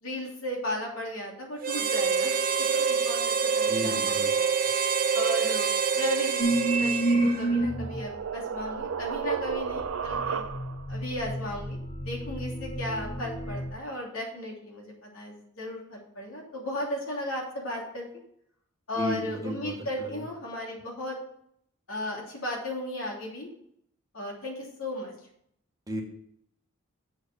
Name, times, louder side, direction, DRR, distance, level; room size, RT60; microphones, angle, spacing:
voice 1, 0.0-2.4 2.7-4.5 5.1-10.5 10.9-11.8 12.0-18.1 18.9-21.2 21.9-23.5 24.1-25.1, left 1 dB, 85° left, -2 dB, 2.9 m, -35 dB
Harmonica, 1.6-7.6, right 6 dB, 45° right, 0.7 m, -26 dB
voice 2, 3.7-4.3 19.0-20.2 25.9-26.0, left 1 dB, 15° right, 0 dB, 1.3 m, -34 dB
sound 1, 6.4-8.1 8.8-13.7, right 2 dB, 35° left, 2.0 m, -30 dB
sound 2, 7.2-10.9, right 6 dB, 85° right, 0.5 m, -33 dB
7.7 x 4.8 x 7.1 m, 0.72 s
head